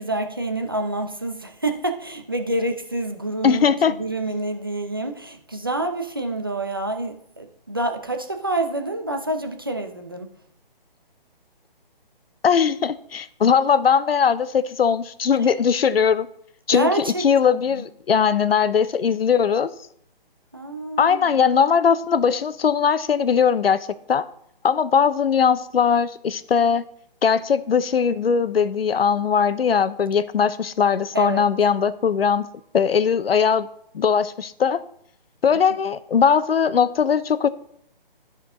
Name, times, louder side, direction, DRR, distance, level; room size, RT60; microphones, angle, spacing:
voice 1, 0.0-10.3 16.7-17.8 20.5-21.4 31.1-31.4, right 2 dB, 25° right, 0.5 m, -27 dB
voice 2, 3.4-3.9 12.4-16.3 16.7-19.7 21.0-24.3 24.6-26.8 27.2-32.5 32.7-33.7 33.9-34.8 35.4-37.5, left 7 dB, 80° left, 0.7 m, -20 dB
12.5 x 4.5 x 3.7 m
hypercardioid pair, 180°, 29 cm